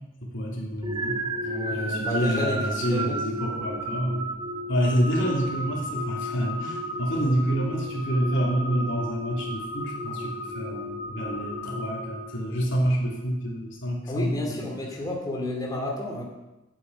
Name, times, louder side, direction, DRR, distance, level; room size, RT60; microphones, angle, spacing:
voice 1, 0.2-1.2 1.7-4.2 4.7-14.7, equal, 70° left, -2 dB, 3.3 m, -28 dB
sound 1, 0.8-12.8, equal, 25° right, 1.2 m, -33 dB
voice 2, 1.4-3.2 3.6-3.8 14.1-16.2, left 1 dB, 20° left, -1 dB, 2.5 m, -31 dB
9.7 x 8.4 x 9.8 m, 1.0 s
head